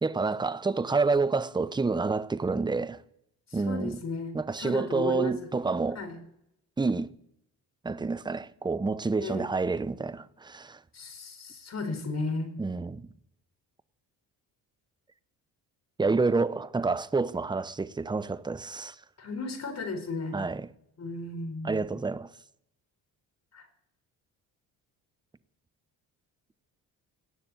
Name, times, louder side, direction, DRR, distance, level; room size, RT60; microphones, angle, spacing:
voice 1, 0.0-3.0 3.5-4.0 4.3-6.0 6.8-7.1 7.8-10.8 12.6-13.1 16.0-18.9 20.3-20.7 21.6-22.3, right 4 dB, 10° right, 0.7 m, -28 dB
voice 2, 3.5-5.5 5.9-6.2 9.2-9.5 10.9-12.5 19.2-20.5 21.0-21.9 23.5-23.7, left 3 dB, 45° left, 4.1 m, -35 dB
18.0 x 6.8 x 9.1 m
cardioid pair, 85°, 38 cm